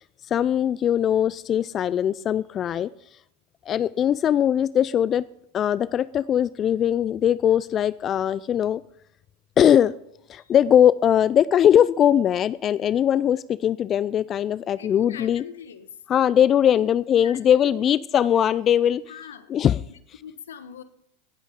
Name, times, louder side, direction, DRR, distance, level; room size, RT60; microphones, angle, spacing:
voice 1, 0.3-2.9 3.7-5.2 5.5-8.8 9.6-9.9 10.3-15.4 16.1-19.0 19.5-19.8, left 10 dB, 35° left, 18 dB, 0.3 m, -20 dB
voice 2, 14.8-15.9 16.7-16.9 17.2-17.9 19.1-19.5 19.9-20.8, left 8 dB, 80° left, 11 dB, 1.2 m, -42 dB
17.5 x 8.2 x 3.7 m, 0.76 s
hypercardioid pair, 95°, 0 cm